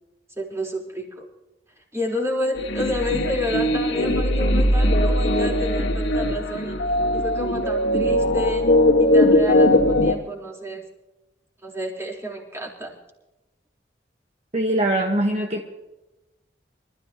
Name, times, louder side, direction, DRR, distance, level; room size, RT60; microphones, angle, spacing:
voice 1, 0.4-1.2 1.9-6.8 7.1-8.7 9.0-10.8 11.6-12.9, left 1 dB, 15° right, -1 dB, 3.8 m, -30 dB
sound 1, 2.6-10.1, left 1 dB, 85° left, 1.7 m, -20 dB
voice 2, 14.5-15.6, right 1 dB, 40° right, 2 dB, 1.3 m, -22 dB
25.5 x 14.0 x 2.9 m, 1.0 s
head